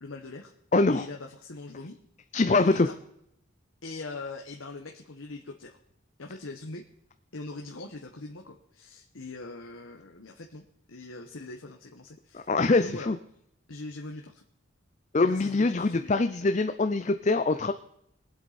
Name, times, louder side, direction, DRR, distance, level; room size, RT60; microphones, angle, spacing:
voice 1, 0.0-0.5 0.9-2.0 2.5-3.0 3.8-5.8 6.2-6.8 7.3-10.6 10.9-12.5 12.8-13.1 13.7-14.3 15.2-16.1, left 2 dB, 90° left, 3 dB, 1.2 m, -41 dB
voice 2, 0.7-1.1 2.3-2.9 12.3-13.2 15.1-17.7, left 3 dB, 35° left, 9 dB, 0.5 m, -24 dB
22.5 x 8.0 x 4.2 m, 0.75 s
head